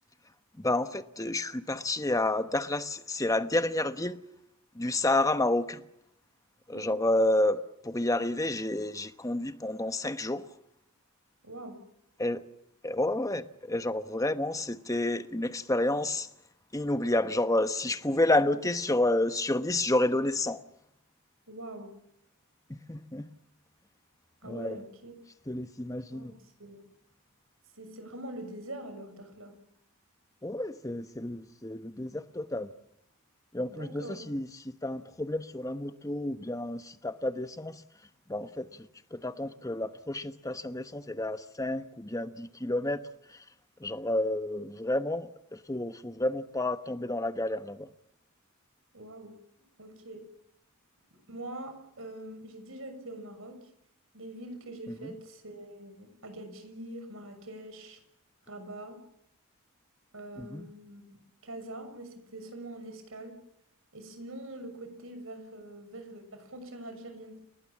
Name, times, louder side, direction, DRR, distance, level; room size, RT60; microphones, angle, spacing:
voice 1, 0.6-4.2 4.7-5.8 6.7-10.4 12.2-12.4 12.8-16.3 16.7-20.6 22.7-23.3 24.4-24.8 25.5-26.3 30.4-32.7 33.5-37.8 38.3-43.0 43.3-43.4 43.8-47.9 54.9-55.1 60.4-60.7, left 1 dB, 15° left, 1.1 m, -30 dB
voice 2, 11.4-11.8 21.5-21.9 24.4-25.1 26.1-26.8 27.8-29.5 33.7-34.2 48.9-49.3 49.8-50.2 51.3-53.6 54.1-58.0 58.5-59.0 60.1-61.0 61.4-63.3 63.9-67.3, right 1 dB, 70° right, 6.8 m, -44 dB
30.0 x 19.0 x 7.4 m
head